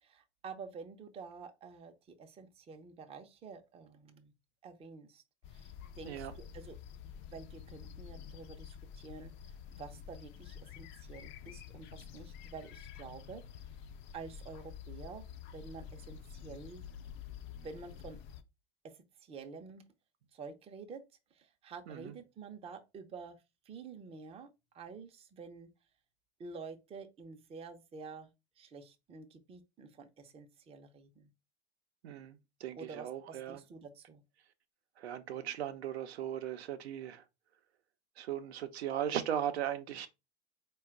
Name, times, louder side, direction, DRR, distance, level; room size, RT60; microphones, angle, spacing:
voice 1, 0.0-4.3 4.6-5.2 5.5-6.8 7.0-9.3 9.7-13.4 14.1-15.2 15.5-16.8 17.5-18.2 18.8-18.9 19.2-19.8 20.3-21.0 21.3-23.4 23.7-24.5 24.7-25.7 26.4-28.3 28.6-31.3 32.8-34.2, right 5 dB, 15° right, 0.6 m, -49 dB
sound 1, 5.4-18.4, left 8 dB, 35° left, 0.5 m, -49 dB
voice 2, 32.0-33.6 35.0-37.2 38.2-40.1, right 10 dB, 70° right, 0.6 m, -38 dB
4.3 x 2.3 x 3.6 m
figure-of-eight pair, 85°, 34 cm